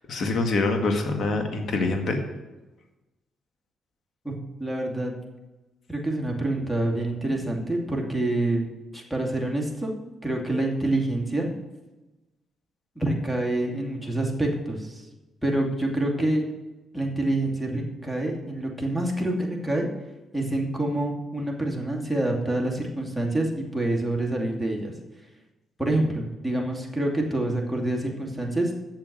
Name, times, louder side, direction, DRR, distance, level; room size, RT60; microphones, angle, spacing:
voice 1, 0.1-2.2, left 3 dB, 60° left, 4 dB, 1.9 m, -25 dB
voice 2, 4.2-5.1 5.9-8.7 8.9-11.5 13.0-15.0 15.4-16.4 16.9-19.9 20.3-24.9 25.8-28.7, right 1 dB, ahead, 0 dB, 2.5 m, -27 dB
7.6 x 7.1 x 8.1 m, 1.1 s
cardioid pair, 70°, 0 cm